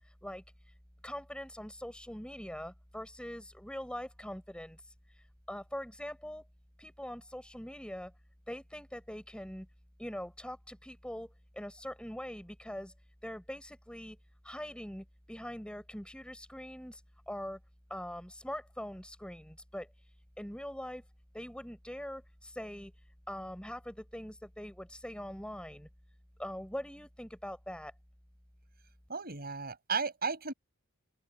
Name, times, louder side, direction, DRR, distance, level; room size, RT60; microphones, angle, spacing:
voice 1, 1.0-4.8 5.5-6.4 6.8-8.1 8.5-9.7 10.0-12.9 13.2-14.2 14.4-17.0 17.3-17.6 17.9-19.9 20.4-21.0 21.3-22.9 23.3-25.9 26.4-27.9, equal, 5° left, 6.8 m, -42 dB
voice 2, 29.1-30.5, right 5 dB, 45° right, 7.0 m, -34 dB
open air
head